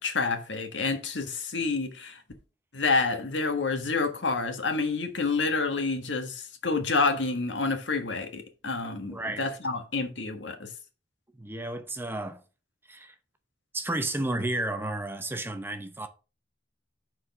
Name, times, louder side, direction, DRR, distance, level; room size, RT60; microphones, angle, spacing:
voice 1, 0.0-2.2 2.7-10.7, left 4 dB, 80° left, 1.5 m, -28 dB
voice 2, 9.1-9.5 11.4-12.4 12.9-13.2 13.7-16.1, right 2 dB, 10° right, 0.8 m, -32 dB
6.1 x 4.8 x 5.9 m
head